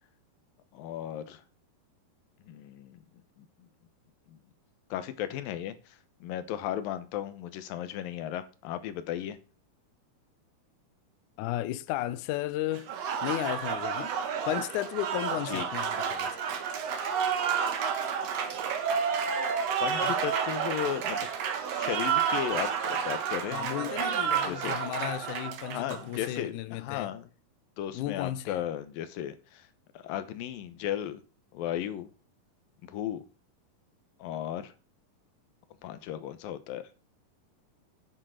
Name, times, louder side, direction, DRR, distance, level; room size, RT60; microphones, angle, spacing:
voice 1, 0.7-1.4 2.4-3.0 3.4-3.5 4.3-4.4 4.9-9.4 15.5-15.7 19.8-21.3 21.7-24.0 24.4-24.8 25.7-27.2 27.8-29.7 29.9-31.2 31.5-32.1 32.8-33.2 34.2-34.7 35.8-36.9, left 11 dB, 75° left, 2.7 m, -35 dB
voice 2, 11.4-12.9 13.2-14.1 14.5-16.4 20.0-20.2 23.5-27.1 27.9-28.6, left 14 dB, 90° left, 1.8 m, -34 dB
Applause, 12.7-26.4, right 7 dB, 55° right, 2.0 m, -30 dB
10.0 x 6.8 x 6.4 m
omnidirectional pair, 4.4 m